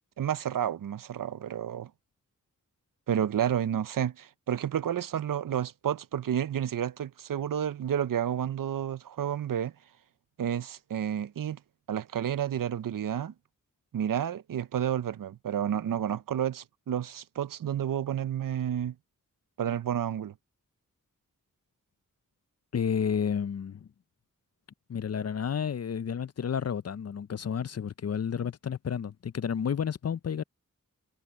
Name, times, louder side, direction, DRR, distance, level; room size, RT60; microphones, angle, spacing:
voice 1, 0.2-1.9 3.1-9.7 10.4-11.6 11.9-13.3 13.9-18.9 19.6-20.3, right 9 dB, 85° right, 0.6 m, -30 dB
voice 2, 22.7-23.9 24.9-30.4, left 7 dB, 50° left, 0.5 m, -31 dB
wide cardioid pair, 85°, 32 cm